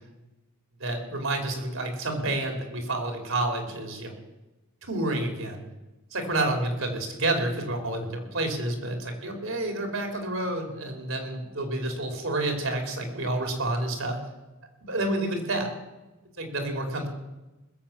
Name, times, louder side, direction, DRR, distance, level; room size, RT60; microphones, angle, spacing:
voice 1, 0.8-4.2 4.9-5.6 6.1-14.2 14.8-15.7 16.4-17.1, right 2 dB, 70° right, 5 dB, 3.1 m, -29 dB
20.0 x 7.8 x 7.2 m, 1.1 s
head